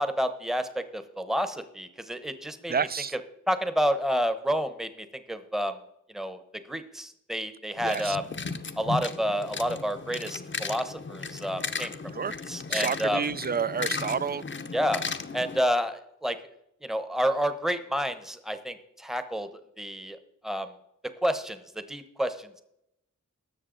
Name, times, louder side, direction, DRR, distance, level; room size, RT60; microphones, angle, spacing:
voice 1, 0.0-2.7 3.5-5.8 6.1-6.4 6.7-8.2 8.8-11.9 12.3-13.2 14.7-15.0 15.3-16.4 16.8-19.5 19.8-20.2 20.4-20.7 21.2-22.6, equal, ahead, 10 dB, 0.9 m, -29 dB
voice 2, 2.7-3.1 7.8-8.2 12.1-12.3 12.7-14.4, right 6 dB, 30° right, 19 dB, 0.4 m, -29 dB
sound 1, 7.8-15.6, left 4 dB, 35° left, 0.7 m, -35 dB
18.0 x 6.6 x 3.9 m, 0.81 s
wide cardioid pair, 55°, 32 cm